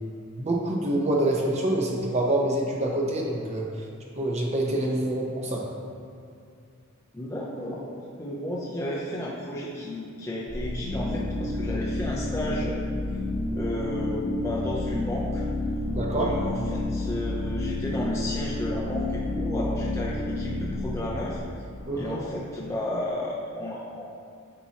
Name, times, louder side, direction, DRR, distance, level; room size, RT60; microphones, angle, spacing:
voice 1, 0.3-3.7 4.2-5.7 15.9-16.3 21.9-22.2, right 1 dB, 30° right, -1 dB, 0.8 m, -26 dB
voice 2, 7.1-7.9 8.2-12.8 13.5-15.4 16.1-21.4 21.9-24.1, left 1 dB, 15° left, -6 dB, 0.6 m, -33 dB
alien engine, 10.5-22.2, left 1 dB, 40° left, 1.0 m, -30 dB
8.4 x 4.4 x 2.9 m, 2.4 s
head